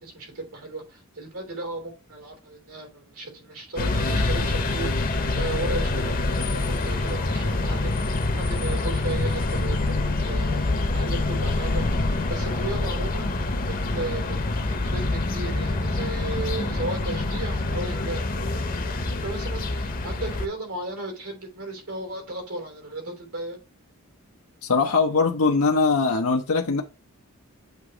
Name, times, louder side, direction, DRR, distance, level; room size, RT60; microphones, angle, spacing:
voice 1, 0.0-8.1 8.4-13.3 13.7-23.6, right 2 dB, 85° right, 3.3 m, -35 dB
sound 1, 3.8-20.5, left 2 dB, 40° left, 0.8 m, -26 dB
voice 2, 24.6-26.8, left 4 dB, 85° left, 0.8 m, -21 dB
8.0 x 3.0 x 4.9 m
head